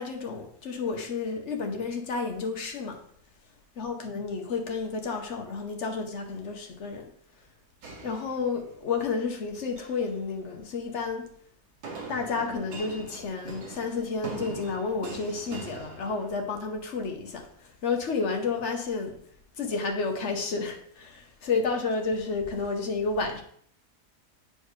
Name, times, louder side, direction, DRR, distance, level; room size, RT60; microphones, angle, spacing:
voice 1, 0.0-3.0 3.8-7.1 8.0-11.2 12.1-17.5 17.8-19.1 19.6-23.4, left 4 dB, 55° left, 1.0 m, -31 dB
sound 1, 7.8-8.9 9.6-10.1 11.8-16.7, right 4 dB, 80° right, 1.7 m, -42 dB
9.1 x 4.4 x 3.2 m
omnidirectional pair, 1.7 m